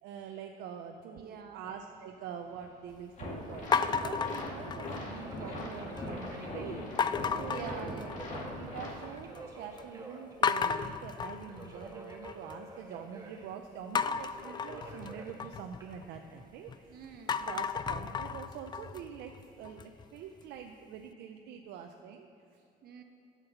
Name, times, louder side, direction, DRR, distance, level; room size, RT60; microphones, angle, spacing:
voice 1, 0.0-6.8 7.2-8.3 8.6-17.0 17.5-22.3 22.5-22.6, right 8 dB, 85° right, 4 dB, 0.6 m, -45 dB
voice 2, 1.2-1.7 7.5-8.2 16.9-17.6 22.8-23.0, right 7 dB, 70° right, 4 dB, 1.3 m, -46 dB
Subway metro underground, 1.9-20.4, right 2 dB, 20° right, 1.5 m, -51 dB
sound 1, 3.2-8.9, left 1 dB, 45° left, 2.2 m, -40 dB
sound 2, 3.7-5.2 5.6-6.1 7.0-8.5 8.8-9.4 9.8-9.9 10.4-12.5 13.9-16.7 17.1-20.0, left 6 dB, 25° left, 0.3 m, -34 dB
9.0 x 7.4 x 6.9 m, 2.7 s
cardioid pair, 110°, 17 cm